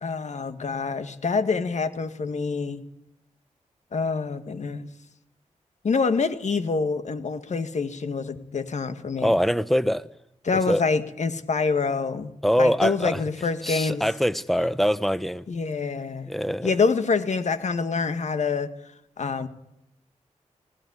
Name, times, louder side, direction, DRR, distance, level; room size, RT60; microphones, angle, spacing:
voice 1, 0.0-2.8 3.9-4.9 5.8-9.4 10.4-12.3 12.6-14.0 15.5-16.3 16.6-18.7 19.2-19.5, left 4 dB, 65° left, 2.0 m, -26 dB
voice 2, 9.2-10.1 10.7-10.8 12.4-13.2 13.6-15.4 16.3-16.7, equal, ahead, 1.0 m, -23 dB
19.0 x 17.0 x 9.9 m
cardioid pair, 65°, 13 cm